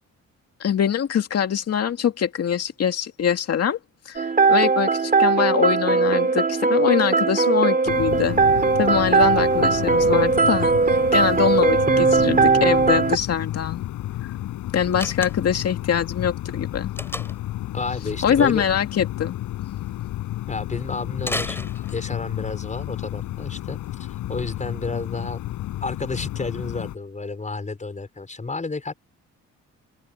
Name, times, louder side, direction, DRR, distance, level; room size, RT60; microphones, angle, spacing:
voice 1, 0.6-3.8 4.1-8.4 8.8-13.8 14.7-16.9 18.2-19.4, left 8 dB, 55° left, 2.3 m, -23 dB
sound 1, 4.2-13.2, right 4 dB, 30° right, 3.6 m, -19 dB
sound 2, 7.9-27.0, left 14 dB, 90° left, 6.0 m, -32 dB
Slam, 14.9-15.7 17.0-17.5 21.2-22.3, left 1 dB, 5° left, 6.8 m, -32 dB
voice 2, 17.7-18.6 20.5-23.8 24.3-25.4 25.8-28.9, left 3 dB, 25° left, 5.7 m, -31 dB
open air
cardioid pair, 90°, 30 cm